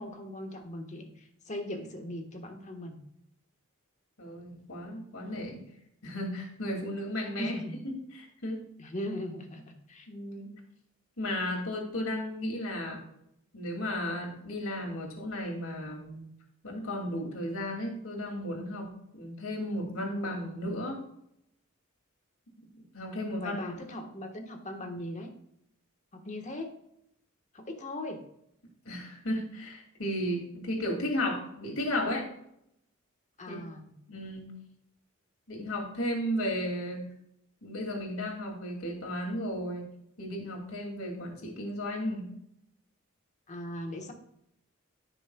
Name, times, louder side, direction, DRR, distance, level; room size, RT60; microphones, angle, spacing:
voice 1, 0.0-3.0 7.4-7.8 8.8-10.1 23.4-25.3 26.1-26.7 27.5-28.2 33.4-33.9 43.5-44.1, left 1 dB, 35° left, 3 dB, 1.3 m, -39 dB
voice 2, 4.2-5.6 6.0-7.5 7.8-8.6 10.1-10.5 11.2-13.0 13.5-16.3 16.6-21.0 22.9-23.6 28.8-32.3 33.5-33.6 34.1-34.6 35.5-37.0 37.6-39.9 40.2-42.3, left 1 dB, 80° left, 0 dB, 2.6 m, -34 dB
14.5 x 6.2 x 2.3 m, 0.76 s
head